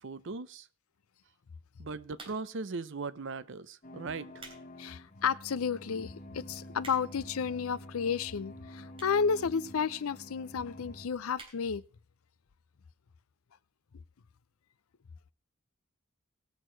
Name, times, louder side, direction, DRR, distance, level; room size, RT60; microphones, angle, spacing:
voice 1, 0.0-0.7 1.8-4.5, right 4 dB, 60° right, 0.6 m, -39 dB
sound 1, 2.1-2.7 3.4-3.6 4.1-4.7 5.1-5.2 5.8-5.9 6.1-6.2 6.4-7.3 8.1-8.2 8.9-9.3 9.6-9.7 9.9-10.0 10.2-10.3 10.6-10.8 11.3-11.6 12.0-12.1 12.3-12.4, right 3 dB, 25° right, 3.4 m, -50 dB
sound 2, 3.8-11.1, left 1 dB, 40° left, 1.0 m, -48 dB
voice 2, 4.8-11.8, left 6 dB, 90° left, 0.5 m, -32 dB
18.5 x 6.4 x 4.5 m
head